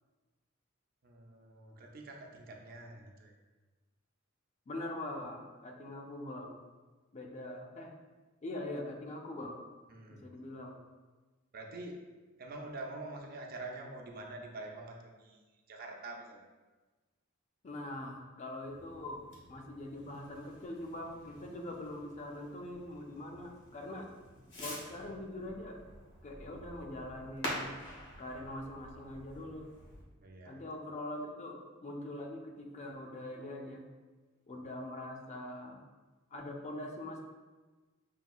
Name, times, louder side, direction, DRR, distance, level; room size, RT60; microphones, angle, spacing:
voice 1, 1.0-3.3 9.9-10.3 11.5-12.0 12.4-15.4 15.7-16.4 30.2-30.6, right 2 dB, 50° right, 1 dB, 0.5 m, -46 dB
voice 2, 4.7-6.6 7.1-7.9 8.4-9.6 10.1-10.8 17.6-24.1 24.6-25.8 26.2-27.8 28.2-29.7 30.4-33.9 34.5-35.8 36.3-37.2, left 1 dB, 35° left, 2 dB, 0.4 m, -43 dB
Fireworks, 18.6-30.0, left 1 dB, 60° left, 1.0 m, -48 dB
5.6 x 2.7 x 2.3 m, 1.3 s
head